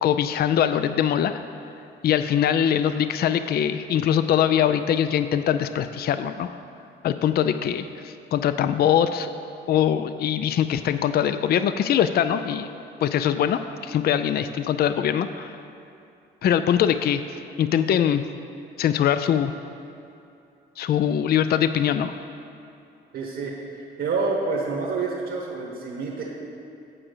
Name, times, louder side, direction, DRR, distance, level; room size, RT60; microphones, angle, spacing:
voice 1, 0.0-1.4 2.0-6.5 7.0-9.3 9.7-12.7 13.0-15.5 16.4-18.2 18.8-19.5 20.8-22.1, left 9 dB, 55° left, 11 dB, 0.4 m, -22 dB
voice 2, 23.1-26.2, right 4 dB, 70° right, -3 dB, 1.4 m, -28 dB
8.8 x 4.9 x 6.6 m, 2.6 s
cardioid pair, 90°, 20 cm